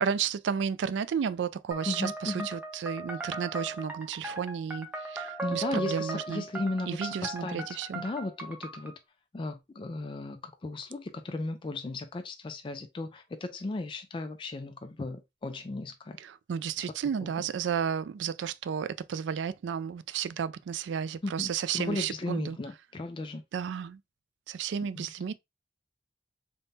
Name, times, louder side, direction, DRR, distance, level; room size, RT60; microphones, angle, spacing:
voice 1, 0.0-6.4 6.9-8.0 16.3-22.6 23.5-24.0 24.5-25.3, right 7 dB, 85° right, 0.3 m, -32 dB
sound 1, 1.7-8.9, right 2 dB, 10° right, 0.7 m, -38 dB
voice 2, 1.9-2.5 5.4-9.0 9.3-16.2 16.8-16.9 17.2-17.4 21.2-23.4 25.0-25.1, left 2 dB, 30° left, 0.4 m, -36 dB
3.5 x 2.2 x 4.0 m
head